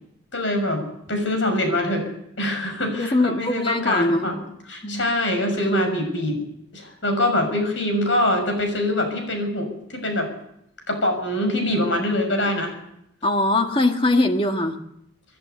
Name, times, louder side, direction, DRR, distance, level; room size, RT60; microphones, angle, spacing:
voice 1, 0.3-2.1 2.4-4.4 4.7-6.4 6.7-10.3 10.9-12.7, left 1 dB, 70° left, 4 dB, 6.6 m, -24 dB
voice 2, 3.0-4.3 4.8-5.1 13.2-14.8, left 2 dB, 25° left, 5 dB, 1.7 m, -21 dB
26.0 x 11.0 x 9.6 m, 0.78 s
head